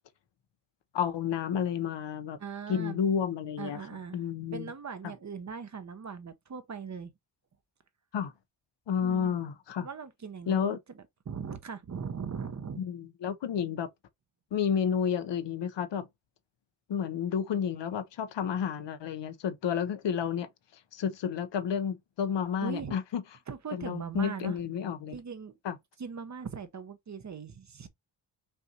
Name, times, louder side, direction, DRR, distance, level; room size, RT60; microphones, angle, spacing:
voice 1, 0.9-2.4 2.7-3.8 4.1-4.7 8.1-8.3 8.9-9.9 10.5-10.8 12.8-13.9 14.5-16.1 16.9-20.5 20.9-23.2 23.7-25.2 25.6-25.8, left 7 dB, 65° left, 0.7 m, -31 dB
voice 2, 2.4-3.0 3.6-4.2 4.5-7.1 9.0-9.4 9.8-10.8 11.2-12.8 22.6-22.9 23.5-24.6 25.1-25.6 26.0-27.9, right 6 dB, 35° right, 0.8 m, -39 dB
5.5 x 2.6 x 2.7 m
cardioid pair, 70°, 46 cm